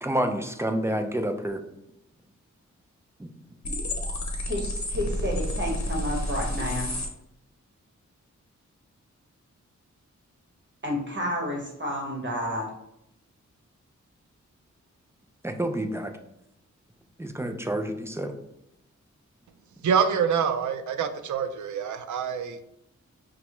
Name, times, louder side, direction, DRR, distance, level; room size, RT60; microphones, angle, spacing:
voice 1, 0.0-1.6 3.2-3.3 15.4-16.1 17.2-18.3, right 1 dB, 10° right, 6 dB, 0.5 m, -28 dB
sound 1, 3.6-7.1, left 1 dB, 65° left, 0.8 m, -30 dB
voice 2, 4.5-6.9 10.8-12.7, equal, 40° right, -1 dB, 1.3 m, -30 dB
voice 3, 19.8-22.6, right 7 dB, 75° right, 9 dB, 0.5 m, -26 dB
5.9 x 2.3 x 3.0 m, 0.82 s
cardioid pair, 70°, 30 cm